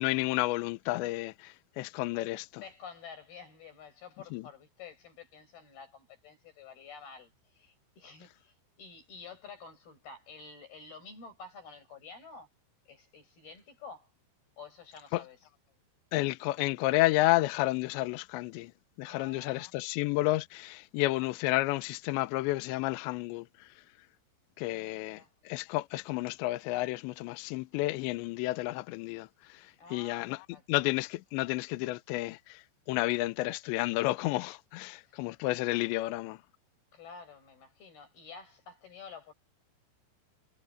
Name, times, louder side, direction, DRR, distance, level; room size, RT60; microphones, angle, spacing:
voice 1, 0.0-2.5 4.3-4.4 15.1-15.2 16.1-18.7 19.0-23.5 24.6-25.2 25.5-29.3 29.5-29.6 29.9-30.4 30.7-32.6 32.9-36.4, left 19 dB, 80° left, 2.8 m, -31 dB
voice 2, 2.6-12.5 12.9-14.1 14.6-15.5 19.0-19.7 24.6-25.3 29.8-30.9 34.9-35.2 36.9-39.3, left 5 dB, 50° left, 8.7 m, -50 dB
omnidirectional pair, 5.6 m